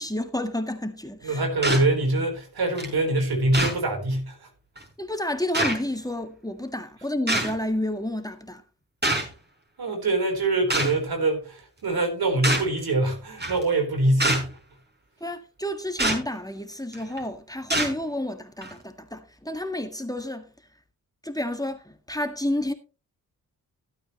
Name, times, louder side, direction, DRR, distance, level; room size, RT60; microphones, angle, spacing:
voice 1, 0.0-1.4 5.0-8.6 15.2-20.5 21.2-22.7, left 1 dB, 10° left, 1.7 m, -30 dB
voice 2, 1.2-4.5 9.8-14.5, right 2 dB, 75° right, 4.0 m, -24 dB
sound 1, 1.6-1.9 2.8-2.9 3.5-3.8 4.8-4.9 5.5-5.8 7.3-7.5 9.0-9.3 10.7-11.0 12.4-12.7 13.4-13.6 14.2-14.5 16.0-16.2 16.9-17.2 17.7-17.9 18.6-18.7, right 1 dB, 25° right, 4.7 m, -24 dB
15.0 x 8.9 x 3.1 m
cardioid pair, 60°, 37 cm